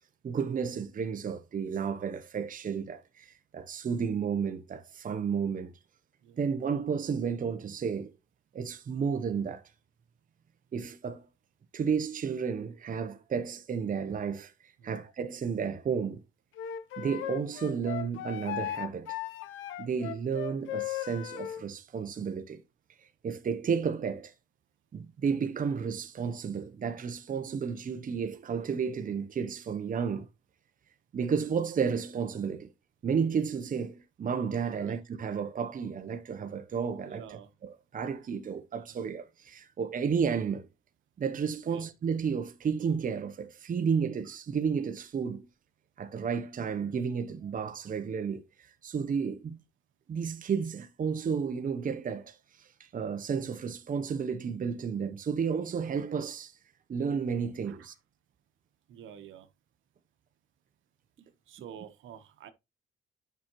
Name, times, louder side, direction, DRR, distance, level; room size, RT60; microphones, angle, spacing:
voice 1, 0.2-5.7 6.4-8.1 8.5-9.6 10.7-11.3 11.7-14.5 14.8-16.2 17.0-19.2 19.8-22.6 23.2-24.3 24.9-30.3 31.1-32.7 33.0-37.2 37.9-40.7 41.2-45.5 46.0-48.5 48.8-49.6 50.1-56.5 56.9-57.9, right 6 dB, 40° right, 0.9 m, -32 dB
Wind instrument woodwind instrument, 16.6-21.6, left 12 dB, 90° left, 0.7 m, -37 dB
voice 2, 37.1-37.5 38.8-39.0 41.7-41.9 47.4-47.5 57.6-57.9 58.9-59.5 61.2-62.5, right 9 dB, 80° right, 1.2 m, -49 dB
9.4 x 5.9 x 3.1 m
cardioid pair, 90°, 20 cm